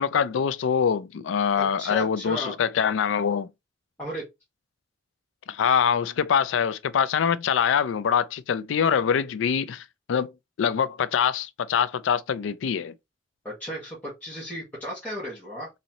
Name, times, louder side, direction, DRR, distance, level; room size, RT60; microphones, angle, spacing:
voice 1, 0.0-3.5 5.5-10.3 10.6-12.9, left 7 dB, 90° left, 0.4 m, -24 dB
voice 2, 1.6-2.5 4.0-4.2 13.4-15.7, equal, 10° left, 1.3 m, -35 dB
4.0 x 2.7 x 2.9 m
head